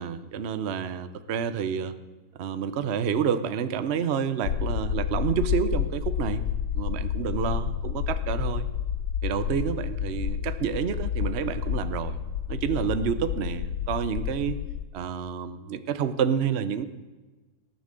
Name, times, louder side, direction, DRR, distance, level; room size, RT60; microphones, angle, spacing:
voice 1, 0.0-1.9 2.4-6.4 6.7-8.7 9.2-12.2 12.5-14.6 14.9-16.9, right 7 dB, 45° right, 11 dB, 0.9 m, -29 dB
sound 1, 4.4-14.9, left 9 dB, 85° left, 1.4 m, -30 dB
17.5 x 10.0 x 7.6 m, 1.2 s
omnidirectional pair, 1.9 m